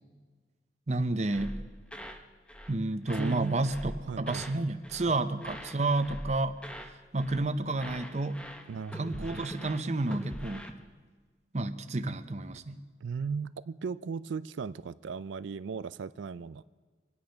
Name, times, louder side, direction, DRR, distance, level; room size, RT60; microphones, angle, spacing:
voice 1, 0.9-1.6 2.7-6.6 7.1-8.4 8.9-10.7 11.5-12.8, right 2 dB, 35° right, 9 dB, 0.7 m, -30 dB
sound 1, 1.3-2.8 3.1-4.6 4.8-5.1 5.4-6.9 7.2-7.5 7.8-10.7, equal, 5° left, 0.9 m, -43 dB
voice 2, 3.2-3.6 4.0-4.4 8.7-9.4 13.0-16.6, right 5 dB, 90° right, 15 dB, 0.4 m, -36 dB
25.0 x 9.3 x 5.7 m, 1.5 s
head